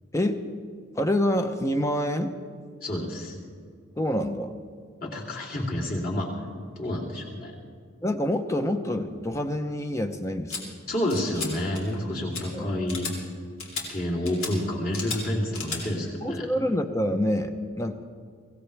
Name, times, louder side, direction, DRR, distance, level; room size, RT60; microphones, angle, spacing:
voice 1, 0.1-0.5 1.0-2.3 4.0-4.5 8.0-10.6 12.5-12.7 16.2-18.0, left 1 dB, 15° left, 7 dB, 0.7 m, -27 dB
voice 2, 2.8-3.4 5.0-6.3 6.8-7.5 10.9-13.1 13.9-16.5, left 1 dB, 45° left, -4 dB, 3.2 m, -29 dB
sound 1, 10.5-10.6 11.1-11.5 11.7-12.0 12.3-12.4 12.9-13.1 13.6-13.8 14.3-14.5 14.9-15.2 15.5-15.8, left 4 dB, 80° left, 3.5 m, -34 dB
23.5 x 17.0 x 3.4 m, 2.1 s
head